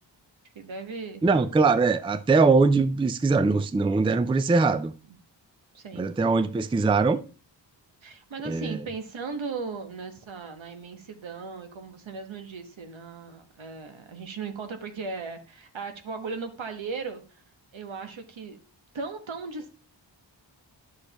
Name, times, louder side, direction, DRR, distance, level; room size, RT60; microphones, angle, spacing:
voice 1, 0.5-1.2 4.6-4.7 5.7-6.1 8.0-17.4 17.7-18.6 18.9-19.7, right 4 dB, 80° right, 1.2 m, -37 dB
voice 2, 1.2-4.9 6.0-7.2 8.5-8.8, right 4 dB, 15° right, 0.3 m, -22 dB
10.0 x 6.5 x 2.9 m
wide cardioid pair, 105°, 46 cm